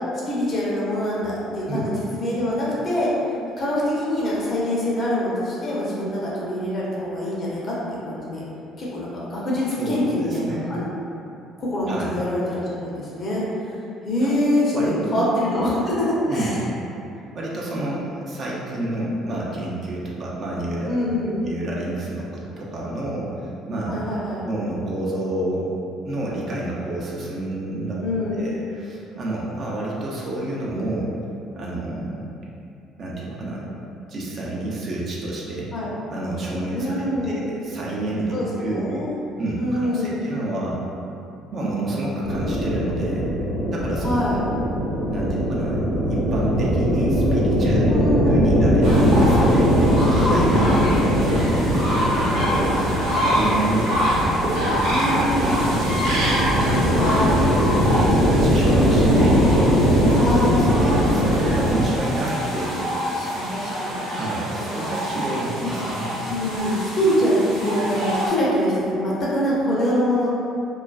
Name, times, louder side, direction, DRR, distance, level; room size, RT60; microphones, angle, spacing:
voice 1, 0.3-3.1 3.6-8.4 8.8-10.9 11.6-13.4 14.0-16.6 20.9-21.4 23.9-24.4 28.0-28.4 35.7-35.9 36.7-37.5 38.3-39.1 39.6-40.2 44.0-44.5 47.9-48.4 52.3-52.8 54.9-55.5 56.7-57.5 58.6-59.3 60.2-60.6 62.5-62.8 63.1-64.1 64.6-64.9 65.6-65.7 66.3-70.3, left 1 dB, 45° left, -6 dB, 0.7 m, -25 dB
voice 2, 9.7-10.1 10.4-10.7 11.9-12.2 14.2-14.4 14.7-15.3 16.3-16.6 17.3-20.9 21.4-23.9 24.4-25.7 26.0-28.0 28.4-31.1 31.5-32.3 33.0-33.6 34.1-35.7 36.1-36.9 37.2-38.3 38.6-38.8 39.4-40.8 41.5-43.2 43.7-44.1 45.1-45.8 46.1-47.9 48.2-49.8 50.1-51.5 52.1-52.7 53.1-54.0 54.4-55.9 56.5-59.4 60.0-60.2 60.6-62.8 64.1-66.0, right 1 dB, 45° right, -5 dB, 0.5 m, -29 dB
sound 1, 42.2-61.8, equal, 85° left, 0.5 m, -20 dB
sound 2, 48.8-68.3, equal, 75° right, 0.8 m, -26 dB
2.3 x 2.2 x 2.4 m, 2.6 s
hypercardioid pair, 55°, 0 cm